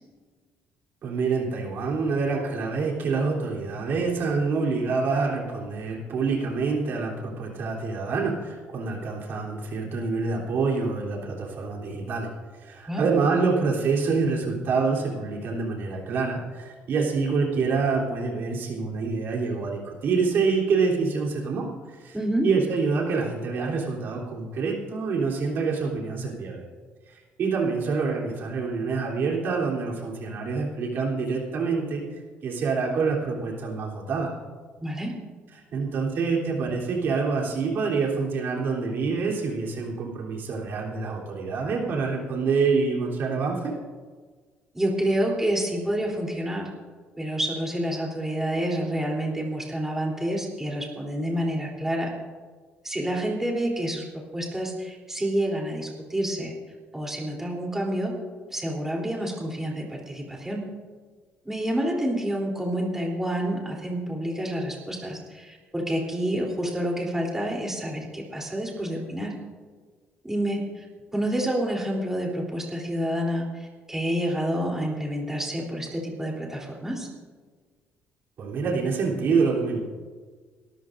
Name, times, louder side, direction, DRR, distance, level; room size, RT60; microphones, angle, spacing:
voice 1, 1.0-12.3 12.6-22.2 22.4-26.6 27.1-32.0 32.4-34.3 35.7-43.7 78.4-79.8, right 4 dB, 60° right, -3 dB, 3.5 m, -26 dB
voice 2, 22.1-22.5 34.8-35.1 44.7-46.7 47.2-52.1 52.8-54.0 54.3-56.5 56.9-58.2 58.5-60.7 61.5-69.3 70.2-70.9 71.1-77.1, right 1 dB, 10° right, -2 dB, 3.5 m, -28 dB
23.5 x 13.5 x 2.6 m, 1.5 s
cardioid pair, 105°, 4 cm